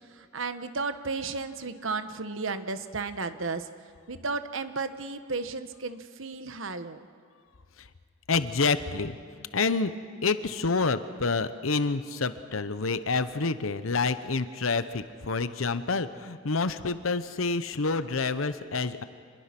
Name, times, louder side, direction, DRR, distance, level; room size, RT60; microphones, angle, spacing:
voice 1, 0.1-3.7 4.1-7.1, right 4 dB, 75° right, 10 dB, 1.1 m, -33 dB
voice 2, 8.3-9.2 9.5-9.9 10.2-19.0, left 4 dB, 85° left, 12 dB, 0.9 m, -28 dB
26.0 x 21.0 x 6.0 m, 2.2 s
head